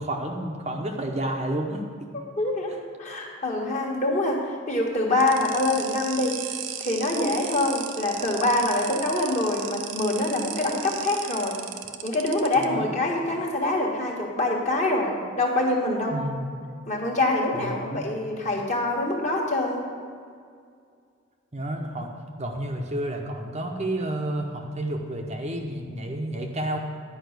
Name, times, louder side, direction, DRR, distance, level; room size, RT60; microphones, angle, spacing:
voice 1, 0.0-1.8 12.6-13.0 16.1-16.5 17.5-18.1 21.5-22.1 22.4-26.8, right 1 dB, 30° right, 1 dB, 0.8 m, -30 dB
voice 2, 2.4-4.4 4.7-6.4 6.8-11.6 12.0-16.2 16.9-19.8, left 2 dB, 35° left, -1 dB, 1.5 m, -25 dB
sound 1, 5.2-12.6, right 10 dB, 60° right, 0.6 m, -36 dB
10.5 x 5.4 x 8.0 m, 2.2 s
head